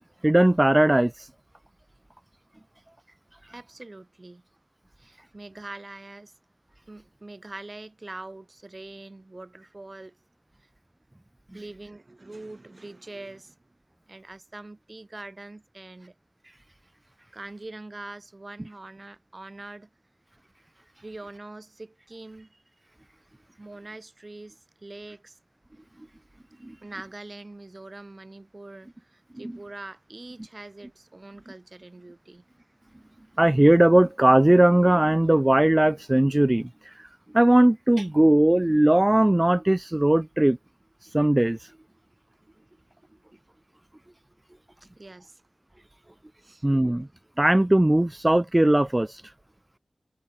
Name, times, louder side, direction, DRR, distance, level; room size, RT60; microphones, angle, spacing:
voice 1, 0.2-1.3 33.4-36.9 37.3-40.6 41.0-41.7 46.6-47.1 47.4-49.2, right 1 dB, 20° right, 0.6 m, -19 dB
voice 2, 3.5-4.4 5.0-6.3 6.9-10.2 11.5-13.7 14.1-16.2 17.3-19.9 21.0-22.6 23.6-25.4 26.7-32.4 45.0-45.4 46.4-46.7, right 2 dB, 40° right, 6.1 m, -43 dB
cardioid pair, 45°, 0 cm